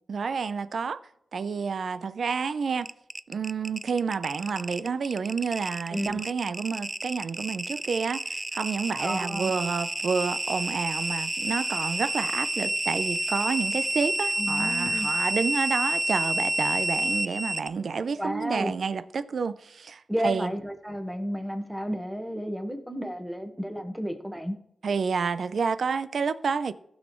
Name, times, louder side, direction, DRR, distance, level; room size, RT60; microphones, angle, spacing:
voice 1, 0.1-1.0 1.3-2.9 3.3-20.5 24.8-26.7, right 5 dB, 75° right, 0.5 m, -29 dB
sound 1, 2.8-17.7, right 2 dB, 20° right, 0.4 m, -29 dB
voice 2, 5.9-6.2 9.0-9.5 14.4-15.1 18.2-18.7 20.1-24.6, equal, 5° right, 1.4 m, -32 dB
15.5 x 6.4 x 3.1 m
cardioid pair, 80°, 0 cm